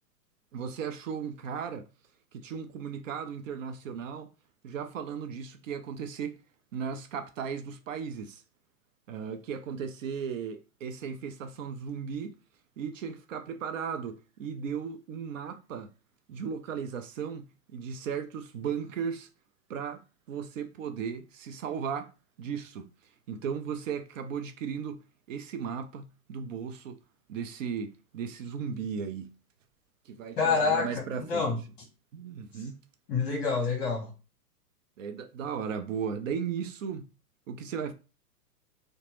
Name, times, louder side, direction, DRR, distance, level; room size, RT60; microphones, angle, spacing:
voice 1, 0.5-1.9 2.3-4.3 4.6-6.3 6.7-8.4 9.1-12.4 12.8-15.9 16.3-17.4 17.7-19.3 19.7-20.0 20.3-22.1 22.4-22.9 23.3-25.0 25.3-27.0 27.3-29.3 30.1-31.5 32.1-32.8 35.0-37.0 37.5-37.9, right 7 dB, 55° right, 0.5 m, -36 dB
voice 2, 30.4-31.6 33.1-34.1, left 5 dB, 30° left, 1.0 m, -27 dB
2.9 x 2.1 x 3.0 m
hypercardioid pair, 125°, 48 cm